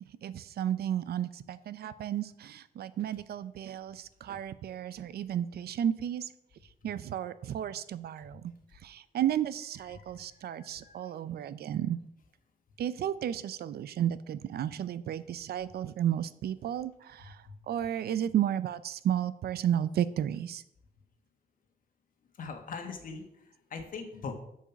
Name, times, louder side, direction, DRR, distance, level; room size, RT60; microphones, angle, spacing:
voice 1, 0.2-6.3 6.8-8.5 8.8-12.0 12.8-20.6, right 10 dB, 75° right, 15 dB, 0.5 m, -33 dB
voice 2, 9.9-10.9 17.4-17.5 22.4-24.3, left 5 dB, 60° left, 5 dB, 1.4 m, -42 dB
7.4 x 7.1 x 5.8 m, 0.78 s
wide cardioid pair, 170°, 16 cm